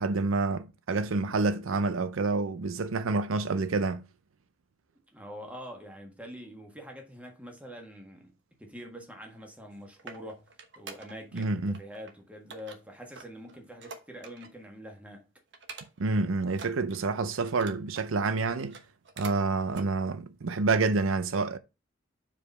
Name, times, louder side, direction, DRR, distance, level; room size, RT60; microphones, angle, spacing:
voice 1, 0.0-4.1 11.3-11.8 16.0-18.8 19.2-21.6, right 3 dB, 80° right, 0.6 m, -28 dB
voice 2, 5.1-10.5 10.8-15.3, equal, 5° right, 1.5 m, -45 dB
sound 1, 9.5-11.5 11.7-12.1 12.5-14.7 15.0-15.1 15.5-16.2 16.5-18.1 18.6-19.4 19.7-19.9 20.4-20.5, right 4 dB, 60° right, 1.1 m, -46 dB
4.9 x 4.9 x 5.4 m
head